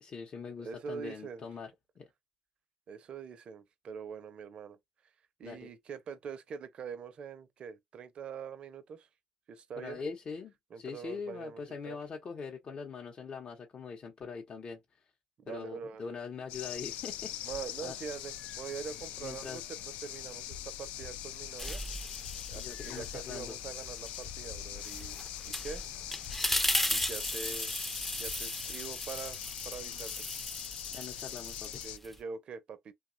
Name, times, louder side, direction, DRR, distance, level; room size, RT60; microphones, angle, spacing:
voice 1, 0.0-1.7 2.0-2.1 5.4-5.7 9.8-15.0 15.5-17.5 17.8-18.0 19.2-19.6 22.5-23.6 30.9-31.8, left 5 dB, 45° left, 0.7 m, -42 dB
voice 2, 0.6-1.5 2.9-4.8 5.4-9.1 9.5-10.0 10.7-12.0 15.4-16.0 17.4-21.8 22.5-25.8 26.9-27.8 28.2-30.3 31.8-32.9, right 6 dB, 55° right, 0.6 m, -44 dB
sound 1, 16.5-32.0, left 12 dB, 75° left, 0.3 m, -42 dB
sound 2, 20.5-21.8 22.2-23.8 24.2-25.8 26.2-27.8 28.2-28.5, left 6 dB, 90° left, 0.8 m, -51 dB
sound 3, 21.6-23.1 23.5-32.2, left 1 dB, 5° left, 0.5 m, -36 dB
2.9 x 2.2 x 2.6 m
hypercardioid pair, 60°, 2 cm